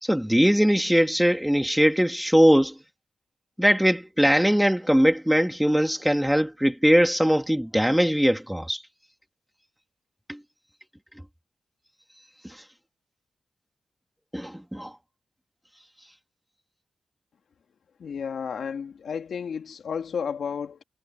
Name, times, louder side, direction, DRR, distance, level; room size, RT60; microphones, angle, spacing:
voice 1, 0.0-2.8 3.6-8.8 10.3-10.4 14.3-14.9, equal, 5° right, 3.1 m, -21 dB
voice 2, 18.0-20.8, left 6 dB, 80° left, 2.7 m, -32 dB
cardioid pair, 45°, 0 cm